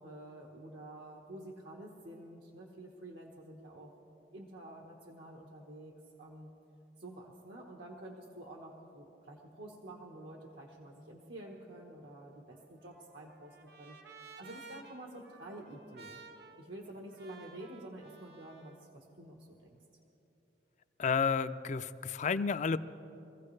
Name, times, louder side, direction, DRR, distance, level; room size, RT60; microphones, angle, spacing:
voice 1, 0.0-3.9 4.3-5.9 6.2-6.5 7.0-14.0 14.4-16.2 16.6-19.8, right 1 dB, 80° right, -2 dB, 1.3 m, -49 dB
Trumpet, 12.5-18.8, right 4 dB, 65° right, 1.0 m, -55 dB
voice 2, 21.0-22.8, left 5 dB, 45° left, 13 dB, 0.4 m, -31 dB
24.5 x 15.0 x 3.2 m, 3.0 s
head